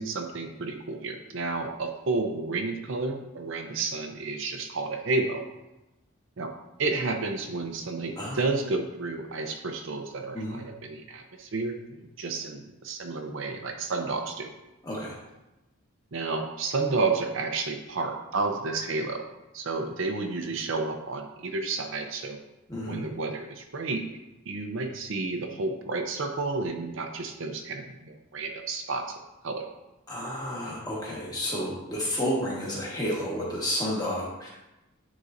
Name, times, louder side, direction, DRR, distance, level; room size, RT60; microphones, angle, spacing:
voice 1, 0.0-5.4 6.4-6.5 6.8-14.5 16.1-19.2 19.5-22.4 22.8-24.0 24.5-29.2 29.4-29.6, right 3 dB, 60° right, 4 dB, 0.5 m, -31 dB
voice 2, 14.8-15.2 22.7-23.1 30.1-34.5, equal, 15° left, -5 dB, 1.3 m, -31 dB
9.5 x 3.8 x 2.5 m, 0.98 s
head